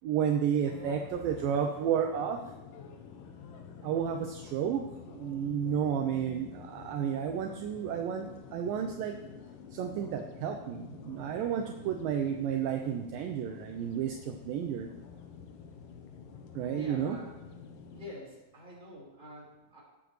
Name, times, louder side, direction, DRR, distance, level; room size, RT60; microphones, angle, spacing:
voice 1, 0.0-2.4 3.8-9.2 9.7-14.9 16.6-17.2, right 8 dB, 80° right, 4 dB, 2.1 m, -32 dB
sound 1, 0.6-18.1, left 6 dB, 75° left, 2.1 m, -49 dB
voice 2, 16.7-17.3 17.9-19.8, left 1 dB, 15° right, -6 dB, 4.0 m, -47 dB
19.0 x 7.7 x 3.2 m, 1.1 s
omnidirectional pair, 4.6 m